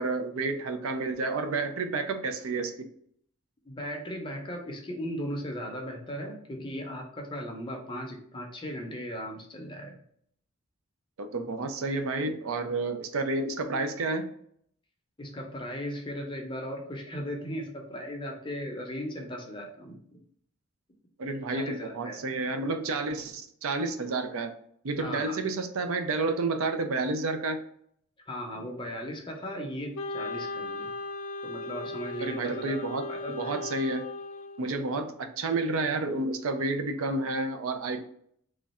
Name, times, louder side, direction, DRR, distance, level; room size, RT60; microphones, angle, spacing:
voice 1, 0.0-2.9 11.2-14.3 21.2-24.5 24.8-27.6 32.2-34.1 34.6-38.0, right 3 dB, 75° right, 7 dB, 0.5 m, -30 dB
voice 2, 3.6-10.0 15.2-20.0 21.5-22.2 25.0-25.4 28.3-30.9 31.4-32.8 33.1-33.6, equal, 20° left, 1 dB, 0.6 m, -37 dB
Wind instrument woodwind instrument, 30.0-35.1, left 2 dB, 70° left, 0.4 m, -37 dB
3.1 x 2.4 x 4.1 m, 0.65 s
head